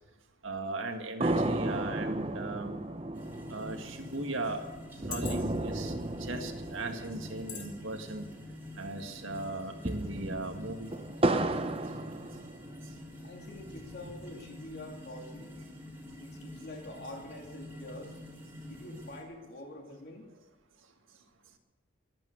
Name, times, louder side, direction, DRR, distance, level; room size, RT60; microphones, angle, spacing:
voice 1, 0.4-2.8 3.5-4.6 5.1-5.9 6.2-8.3 8.8-10.9, right 2 dB, 75° right, 5 dB, 1.9 m, -38 dB
sound 1, 1.2-8.8 9.1-9.2 9.6-13.0 13.5-14.5, right 2 dB, 25° right, 0.8 m, -34 dB
sound 2, 3.0-3.2 3.9-4.0 4.9-5.7 6.4-6.6 7.5-7.7 8.1-8.3, left 8 dB, 75° left, 2.8 m, -42 dB
sound 3, 3.1-19.2, left 1 dB, 10° right, 2.7 m, -47 dB
voice 2, 13.2-15.6 16.2-18.2 18.6-20.3, left 1 dB, 50° left, 1 dB, 3.0 m, -46 dB
23.0 x 8.9 x 6.6 m, 1.2 s
head